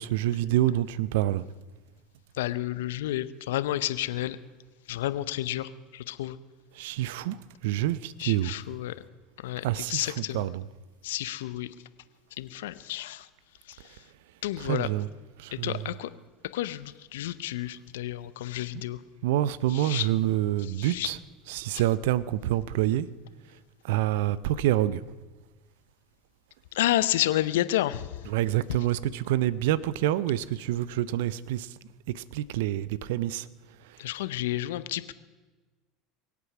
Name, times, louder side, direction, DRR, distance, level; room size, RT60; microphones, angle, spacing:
voice 1, 0.0-1.4 6.8-7.4 7.6-8.5 9.6-10.0 10.3-10.6 14.7-15.1 15.4-15.8 19.2-21.2 21.5-23.1 23.9-25.0 28.3-31.7 32.1-33.4, right 13 dB, 70° right, 19 dB, 0.5 m, -27 dB
voice 2, 2.4-4.4 4.9-6.4 8.2-9.0 9.4-10.5 11.0-11.7 12.4-13.3 13.7-14.0 14.4-14.9 15.5-16.1 16.5-19.0 19.7-20.1 20.6-21.1 21.7-21.8 26.7-28.1 28.7-28.8 34.0-35.1, left 14 dB, 75° left, 15 dB, 0.6 m, -30 dB
23.0 x 8.4 x 6.0 m, 1.3 s
hypercardioid pair, 75°, 0 cm